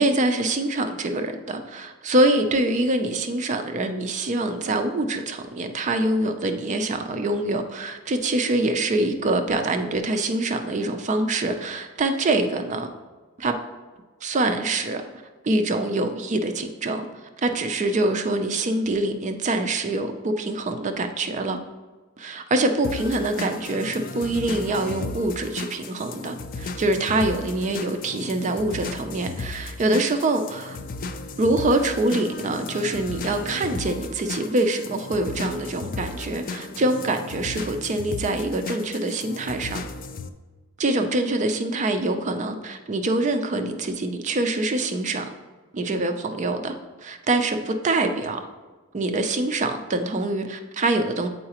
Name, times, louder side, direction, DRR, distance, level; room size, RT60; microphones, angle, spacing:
voice 1, 0.0-12.9 13.4-13.5 14.2-15.0 15.4-21.6 22.2-30.8 31.4-39.8 40.8-45.3 45.7-48.5 48.9-51.3, right 2 dB, 35° right, 7 dB, 0.4 m, -25 dB
sound 1, 22.8-40.3, left 3 dB, 40° left, 0.4 m, -35 dB
7.6 x 4.7 x 2.9 m, 1.3 s
head